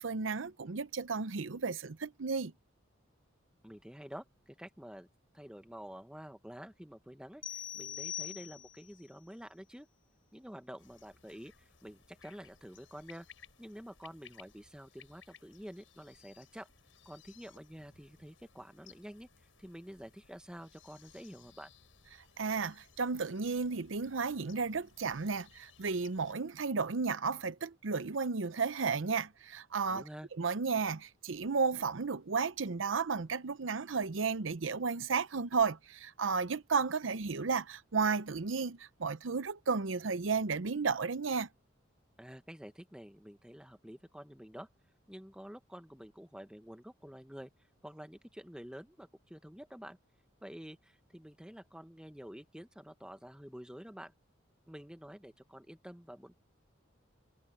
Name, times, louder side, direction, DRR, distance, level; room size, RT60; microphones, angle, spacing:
voice 1, 0.0-2.5 22.4-30.0 30.4-41.5, right 5 dB, 85° right, 0.7 m, -33 dB
voice 2, 3.6-5.1 5.3-9.9 10.3-13.3 13.6-16.7 17.0-19.3 19.6-21.7 29.9-30.3 42.2-44.7 45.1-47.5 47.8-50.0 50.4-54.1 54.7-56.3, equal, 5° right, 1.4 m, -49 dB
sound 1, 7.4-8.9, left 10 dB, 25° left, 0.3 m, -42 dB
sound 2, 10.8-26.3, left 7 dB, 90° left, 6.0 m, -61 dB
head